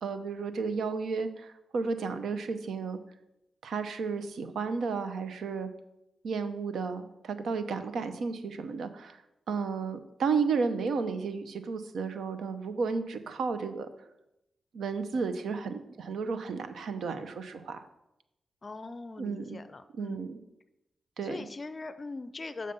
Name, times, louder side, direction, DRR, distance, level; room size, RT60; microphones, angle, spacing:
voice 1, 0.0-3.0 3.6-5.7 6.2-9.2 9.5-13.9 14.7-17.8 19.2-19.6 19.9-20.4 21.2-21.4, right 5 dB, 80° right, 10 dB, 0.7 m, -33 dB
voice 2, 18.6-20.2 21.2-22.7, left 3 dB, 40° left, 12 dB, 0.4 m, -41 dB
6.8 x 6.5 x 5.2 m, 0.88 s
cardioid pair, 75°, 0 cm